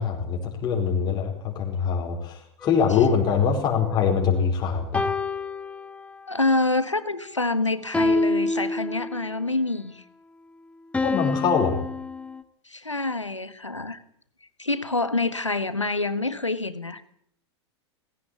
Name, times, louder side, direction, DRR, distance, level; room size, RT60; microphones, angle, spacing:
voice 1, 0.0-5.0 11.0-11.8, left 6 dB, 30° left, 1 dB, 4.8 m, -23 dB
sound 1, 2.6-4.3 4.9-6.4 7.9-9.4 10.9-12.4, left 2 dB, 10° left, 1.5 m, -28 dB
voice 2, 6.3-10.0 12.6-14.0 14.6-17.0, left 2 dB, 85° left, 13 dB, 1.6 m, -27 dB
19.5 x 17.0 x 8.8 m, 0.66 s
figure-of-eight pair, 95°, 15 cm